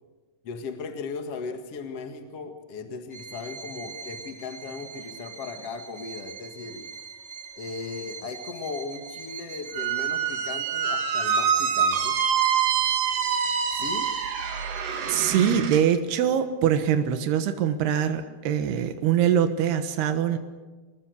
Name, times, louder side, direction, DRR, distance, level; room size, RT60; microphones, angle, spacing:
voice 1, 0.4-6.9 7.6-12.2 13.7-14.1, left 4 dB, 50° left, 5 dB, 2.3 m, -37 dB
Bowed string instrument, 3.1-15.6, right 5 dB, 20° right, 0.9 m, -43 dB
Squeak, 9.7-15.8, right 7 dB, 60° right, 3.4 m, -25 dB
voice 2, 15.1-20.4, right 9 dB, 90° right, 8 dB, 3.4 m, -23 dB
27.5 x 20.5 x 6.5 m, 1.3 s
omnidirectional pair, 4.5 m